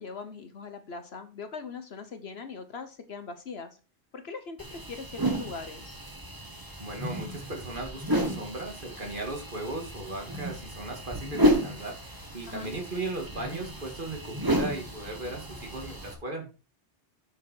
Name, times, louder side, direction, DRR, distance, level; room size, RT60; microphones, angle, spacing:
voice 1, 0.0-3.8 4.1-6.0 12.4-12.7, left 5 dB, 70° left, 9 dB, 1.2 m, -41 dB
sound 1, 4.6-16.1, equal, 20° right, 1.7 m, -32 dB
voice 2, 6.8-16.5, right 2 dB, 50° right, 2 dB, 2.6 m, -37 dB
8.6 x 7.4 x 4.5 m, 0.32 s
omnidirectional pair, 1.1 m